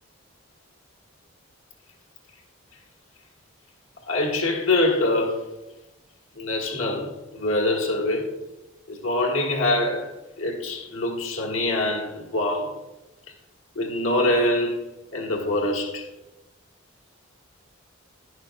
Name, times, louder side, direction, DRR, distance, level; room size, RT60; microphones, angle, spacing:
voice 1, 4.1-5.5 6.4-8.3 8.9-12.7 13.7-14.8 15.1-16.1, left 2 dB, 75° left, 1.5 m, -24 dB
11.5 x 10.5 x 2.2 m
head